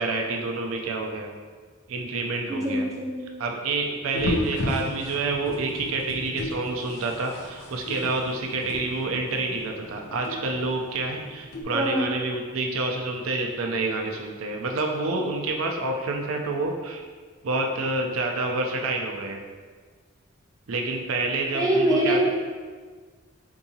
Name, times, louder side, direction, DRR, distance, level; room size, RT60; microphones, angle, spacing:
voice 1, 0.0-1.3 1.9-2.9 3.4-17.0 17.4-19.4 20.7-22.3, right 3 dB, 80° right, 1 dB, 0.4 m, -28 dB
voice 2, 2.5-3.3 11.7-12.2 21.5-22.3, right 1 dB, 15° right, -4 dB, 0.5 m, -24 dB
sound 1, 4.1-11.6, left 1 dB, 75° left, 0.5 m, -34 dB
4.6 x 2.7 x 2.7 m, 1.5 s
head